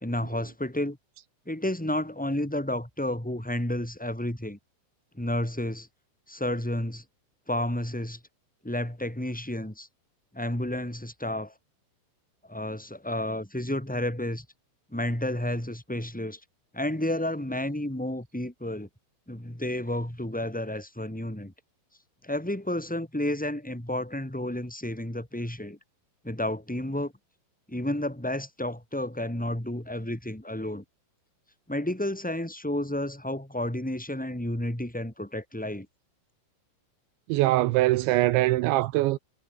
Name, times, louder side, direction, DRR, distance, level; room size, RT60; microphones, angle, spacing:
voice 1, 0.0-1.0 1.5-4.6 5.1-5.9 6.3-7.0 7.5-8.2 8.6-9.9 10.3-11.5 12.5-14.4 14.9-16.4 16.7-18.9 19.3-21.5 22.2-25.8 26.2-27.1 27.7-30.8 31.7-35.9, left 1 dB, ahead, 2.0 m, -31 dB
voice 2, 37.3-39.2, right 17 dB, 85° right, 2.8 m, -22 dB
omnidirectional pair, 5.7 m